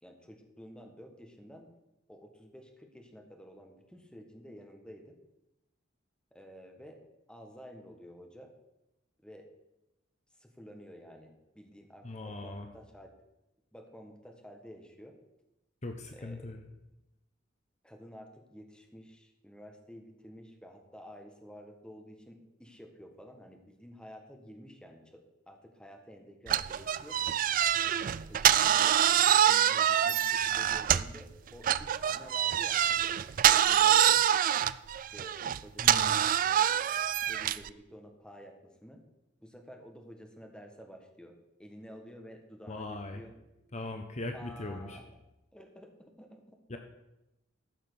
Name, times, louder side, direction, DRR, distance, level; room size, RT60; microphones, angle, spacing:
voice 1, 0.0-1.7 2.1-5.1 6.3-7.0 7.3-8.5 9.2-9.5 10.4-13.1 13.7-15.2 16.1-16.6 17.8-27.2 28.2-33.1 33.5-34.4 34.9-36.1 36.4-37.0 37.3-39.0 39.4-43.3 44.3-45.1 45.5-46.5, equal, 5° left, 3 dB, 1.6 m, -51 dB
voice 2, 12.0-12.7 15.8-16.6 35.8-36.2 42.7-43.2 43.7-45.0 46.7-46.8, left 2 dB, 35° left, 5 dB, 0.9 m, -39 dB
sound 1, 26.5-31.2 31.6-37.7, right 10 dB, 45° right, 0.3 m, -25 dB
13.5 x 5.8 x 6.9 m, 0.93 s
head